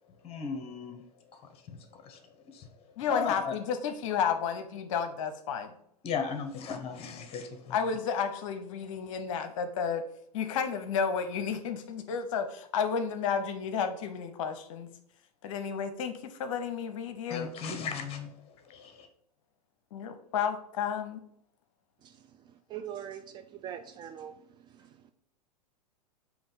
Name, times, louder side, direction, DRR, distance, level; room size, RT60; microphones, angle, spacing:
voice 1, 0.2-1.0 1.3-3.5 6.0-7.9 17.3-19.1, left 6 dB, 30° left, 7 dB, 1.1 m, -37 dB
voice 2, 3.0-5.7 7.7-10.0 10.3-14.9 15.4-17.5 19.9-21.2, left 6 dB, 50° left, 9 dB, 0.8 m, -32 dB
voice 3, 22.7-24.4 24.7-25.1, right 9 dB, 20° right, 6 dB, 0.3 m, -42 dB
7.1 x 3.0 x 5.5 m, 0.71 s
figure-of-eight pair, 95°, 20 cm